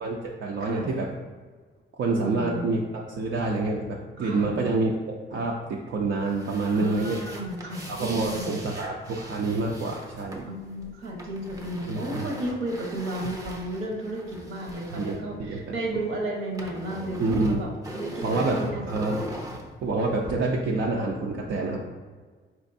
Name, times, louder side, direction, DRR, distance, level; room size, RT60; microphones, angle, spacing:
voice 1, 0.0-1.1 1.9-4.9 5.3-7.2 7.9-10.4 11.9-12.3 14.9-15.6 17.2-17.6 18.2-19.3 19.8-21.8, right 3 dB, 65° right, -1 dB, 0.5 m, -27 dB
voice 2, 2.1-2.6 4.2-4.5 6.7-8.6 10.5-17.7 17.9-19.4, right 1 dB, 80° right, -1 dB, 1.0 m, -33 dB
sound 1, 6.2-16.0 16.3-20.3, equal, 15° right, 0.6 m, -41 dB
4.4 x 3.1 x 2.6 m, 1.4 s
cardioid pair, 90°, 21 cm